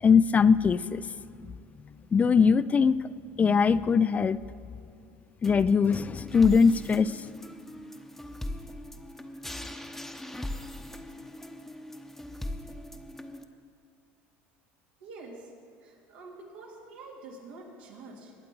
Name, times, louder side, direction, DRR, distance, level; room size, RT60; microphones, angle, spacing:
voice 1, 0.0-1.0 1.4-1.5 2.1-3.0 3.4-4.4 5.4-7.2, left 5 dB, 25° left, 16 dB, 0.3 m, -21 dB
sound 1, 5.4-13.4, left 1 dB, 5° left, 0.8 m, -40 dB
voice 2, 15.0-15.5 15.8-18.3, right 3 dB, 85° right, -2 dB, 3.0 m, -46 dB
21.0 x 8.5 x 4.6 m, 2.5 s
supercardioid pair, 110°, 6 cm